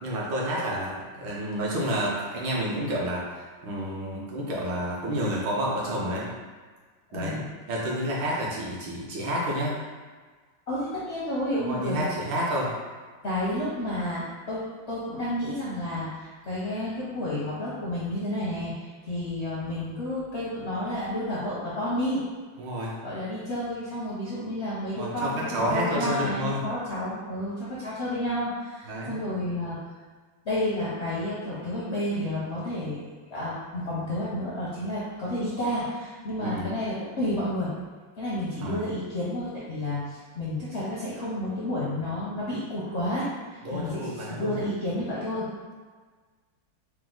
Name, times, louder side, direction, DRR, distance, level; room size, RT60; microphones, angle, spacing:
voice 1, 0.0-6.3 7.1-7.4 7.7-9.8 11.6-12.7 22.6-23.0 25.0-26.6 28.9-29.2 36.4-36.7 38.6-38.8 43.6-44.6, equal, 75° right, -4 dB, 1.5 m, -29 dB
voice 2, 7.1-7.4 10.7-12.1 13.2-14.6 14.9-22.2 23.0-29.8 30.4-33.0 33.3-37.7 38.2-45.5, left 1 dB, 60° left, -9 dB, 0.7 m, -31 dB
4.5 x 2.0 x 3.7 m, 1.4 s
omnidirectional pair, 2.1 m